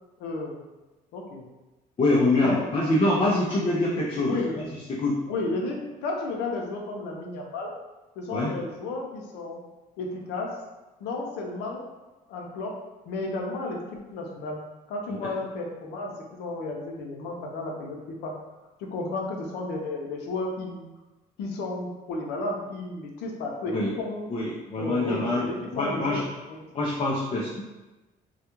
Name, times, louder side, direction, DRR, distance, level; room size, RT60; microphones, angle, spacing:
voice 1, 0.2-0.6 1.1-1.4 2.4-2.6 4.2-4.6 5.3-7.7 8.2-9.6 10.0-10.5 11.0-11.8 12.3-12.8 13.1-14.6 14.9-18.3 18.8-20.8 21.4-24.3 24.8-26.7, left 2 dB, 85° left, 0 dB, 0.6 m, -33 dB
voice 2, 2.0-4.6 5.0-5.2 8.3-8.5 15.2-15.3 23.7-23.9 24.3-25.5 25.7-26.2 26.7-27.6, left 2 dB, 30° left, -4 dB, 0.5 m, -25 dB
2.3 x 2.2 x 2.9 m, 1.1 s
cardioid pair, 110°, 17 cm